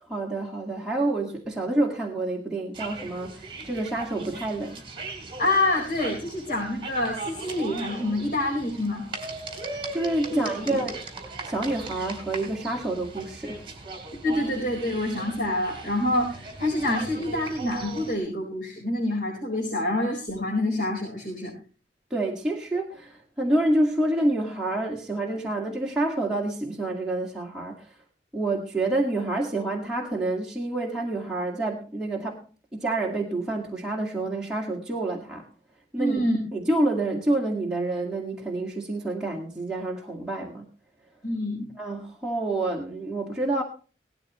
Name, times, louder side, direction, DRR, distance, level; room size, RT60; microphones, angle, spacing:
voice 1, 0.0-4.8 9.9-11.0 11.4-13.7 22.1-27.9 28.3-32.4 32.7-35.5 35.9-36.2 36.5-40.7 41.8-43.6, right 2 dB, 5° right, -4 dB, 2.0 m, -28 dB
sound 1, 2.7-18.2, right 3 dB, 30° right, 3.6 m, -39 dB
voice 2, 5.4-9.0 10.3-10.8 14.2-21.5 36.0-36.4 41.2-41.7, left 1 dB, 50° left, -3 dB, 4.7 m, -27 dB
18.0 x 13.0 x 3.1 m, 0.37 s
head